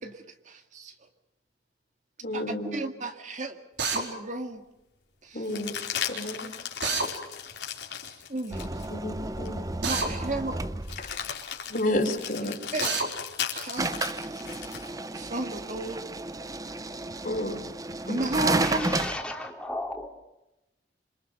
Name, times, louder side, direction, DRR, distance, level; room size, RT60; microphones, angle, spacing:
voice 1, 0.0-0.9 2.3-3.6 3.9-4.6 5.2-5.4 8.3-8.7 9.8-10.6 12.7-13.0 13.5-14.5 15.1-16.0 18.1-19.0, right 2 dB, 45° right, 2.0 m, -33 dB
voice 2, 2.2-2.8 5.3-5.8 6.1-6.5 8.9-9.6 11.0-11.2 11.7-12.6 17.2-17.6 18.1-18.8, left 1 dB, 50° left, 4.5 m, -31 dB
Drill, 3.8-4.0 6.8-7.1 9.8-10.1 12.8-13.1, right 4 dB, 85° right, 4.6 m, -27 dB
sound 1, 5.4-8.9 9.4-9.6 10.8-14.9 17.1-18.0, left 8 dB, 80° left, 4.3 m, -36 dB
sound 2, 8.5-11.2 13.8-19.2, right 2 dB, 20° right, 0.8 m, -32 dB
voice 3, 18.6-20.1, left 1 dB, 5° left, 3.2 m, -34 dB
27.0 x 26.5 x 5.4 m
head